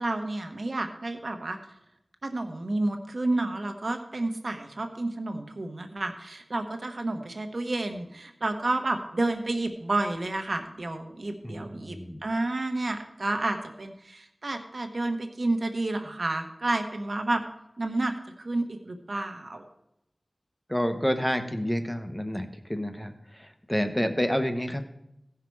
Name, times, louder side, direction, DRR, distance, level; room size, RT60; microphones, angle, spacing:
voice 1, 0.0-1.6 2.2-17.4 17.8-18.1 18.4-19.7, right 2 dB, 75° right, 6 dB, 1.1 m, -30 dB
voice 2, 11.4-12.2 20.7-24.8, equal, 10° left, 7 dB, 1.0 m, -29 dB
16.0 x 5.8 x 4.7 m, 0.82 s
wide cardioid pair, 50°, 0 cm